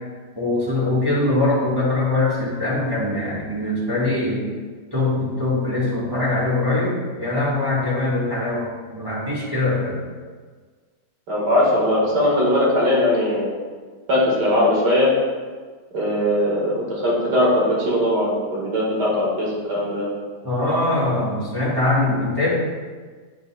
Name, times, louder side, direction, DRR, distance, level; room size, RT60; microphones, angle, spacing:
voice 1, 0.4-4.5 4.9-8.7 8.9-10.0 20.4-22.6, left 2 dB, 15° right, -7 dB, 1.6 m, -22 dB
voice 2, 11.3-13.5 14.1-15.1 15.9-20.1, left 1 dB, 85° right, -5 dB, 2.5 m, -20 dB
9.3 x 6.7 x 2.3 m, 1.5 s
omnidirectional pair, 1.8 m